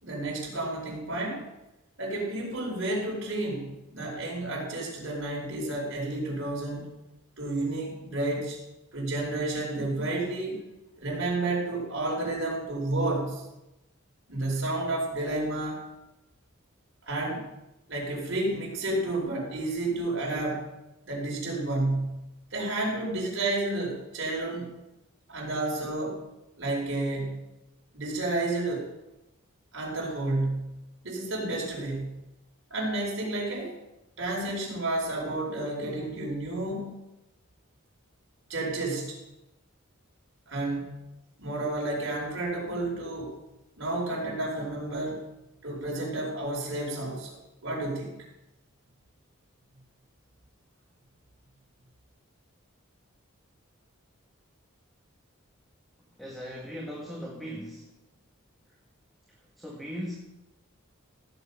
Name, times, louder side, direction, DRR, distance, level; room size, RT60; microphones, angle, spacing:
voice 1, 0.0-1.5 2.0-6.9 7.4-8.6 8.9-10.6 11.0-13.4 14.3-15.8 17.0-17.5 17.9-20.6 21.1-22.2 22.5-24.7 25.3-26.2 26.6-27.4 27.9-28.8 29.7-30.8 31.0-32.2 32.7-33.7 34.2-36.9 38.5-39.2 40.5-40.9 41.4-43.3 43.8-45.2 45.6-48.1, right 2 dB, 60° right, -3 dB, 4.8 m, -31 dB
voice 2, 56.2-57.9 59.6-60.1, equal, ahead, -3 dB, 1.5 m, -38 dB
15.5 x 8.1 x 5.6 m, 0.95 s
head